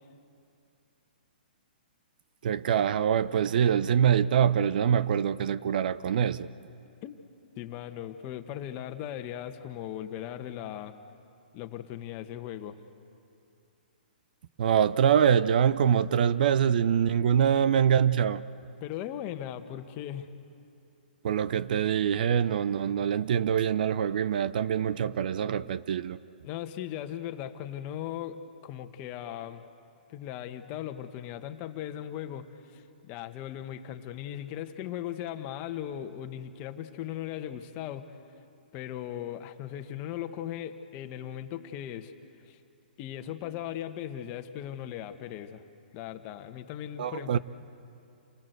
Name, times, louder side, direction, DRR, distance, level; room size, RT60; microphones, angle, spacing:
voice 1, 2.4-6.5 14.6-18.4 21.2-26.2 47.0-47.4, right 8 dB, 60° right, 0.6 m, -24 dB
voice 2, 7.6-11.0 11.5-12.8 18.8-20.3 26.4-29.6 30.1-38.1 38.7-42.1 42.5-42.6 43.0-45.6 45.9-47.4, left 11 dB, 35° left, 1.4 m, -38 dB
28.0 x 20.0 x 8.2 m
hypercardioid pair, 135°, 5 cm